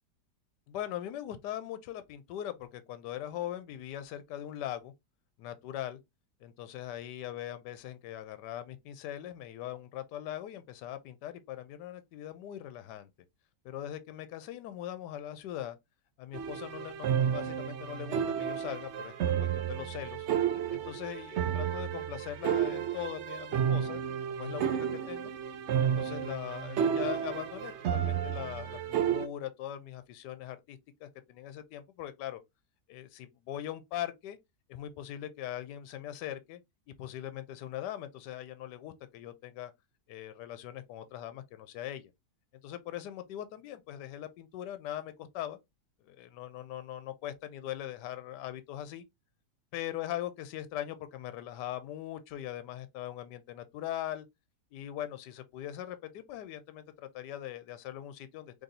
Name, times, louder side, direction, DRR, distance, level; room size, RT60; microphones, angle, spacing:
voice 1, 0.7-4.9 5.4-6.0 6.4-13.1 13.6-15.8 16.2-19.1 19.4-20.3 20.7-24.0 24.4-25.3 25.8-32.4 32.9-34.4 34.7-36.6 37.0-39.7 40.1-42.1 42.6-45.6 46.0-49.0 49.7-54.3 54.7-58.6, left 12 dB, 80° left, 1.2 m, -41 dB
sound 1, 16.3-29.3, right 8 dB, 75° right, 0.6 m, -32 dB
3.9 x 3.3 x 2.7 m
omnidirectional pair, 1.8 m